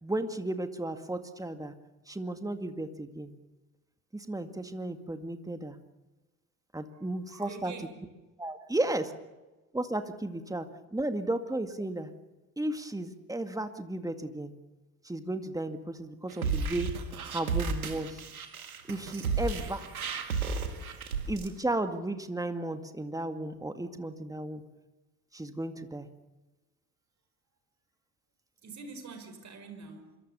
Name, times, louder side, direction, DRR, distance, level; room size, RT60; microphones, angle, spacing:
voice 1, 0.0-1.7 2.1-3.3 4.1-5.8 6.7-7.7 8.4-9.1 9.7-12.1 12.6-14.5 15.0-16.9 17.3-18.2 18.9-19.9 21.3-24.6 25.3-26.1, right 1 dB, 10° right, 8 dB, 2.1 m, -34 dB
voice 2, 6.9-7.9 8.6-8.7 20.8-21.0 28.6-30.2, right 4 dB, 40° right, 7 dB, 5.5 m, -46 dB
sound 1, 16.3-21.5, right 4 dB, 85° right, 1.9 m, -33 dB
26.0 x 23.0 x 7.0 m, 1.1 s
figure-of-eight pair, 55°, 42 cm